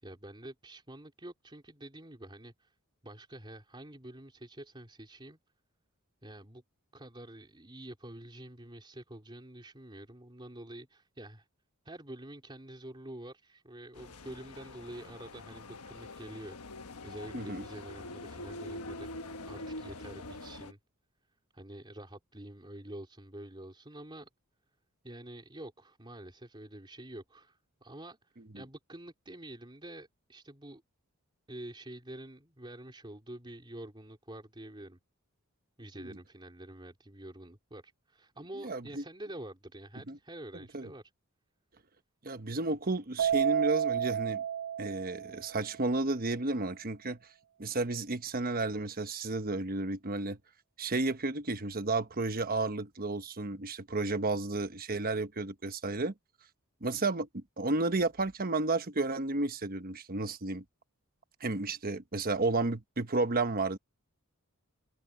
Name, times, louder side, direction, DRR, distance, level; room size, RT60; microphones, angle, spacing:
voice 1, 0.0-2.7 3.0-5.4 6.2-6.6 6.9-11.5 11.8-16.6 17.0-20.8 21.5-24.3 25.0-30.8 31.5-35.0 35.8-41.0, right 1 dB, 20° right, 3.7 m, -47 dB
sound 1, 13.9-20.7, left 2 dB, 85° left, 1.3 m, -44 dB
voice 2, 17.3-17.6 28.5-28.6 36.0-36.2 38.6-39.0 40.1-40.2 40.5-40.9 42.2-44.4 44.8-47.2 47.6-50.4 50.8-56.1 56.8-60.6 61.4-63.8, right 3 dB, 40° right, 1.1 m, -32 dB
Keyboard (musical), 43.2-45.7, right 9 dB, 75° right, 1.1 m, -31 dB
head